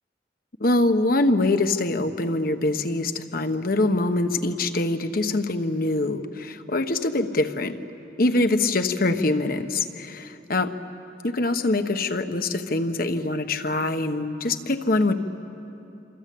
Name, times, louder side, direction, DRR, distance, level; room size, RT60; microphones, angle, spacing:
voice 1, 0.6-7.7 8.2-10.7 11.2-15.1, left 2 dB, 55° left, 8 dB, 1.2 m, -24 dB
27.0 x 25.5 x 8.6 m, 3.0 s
head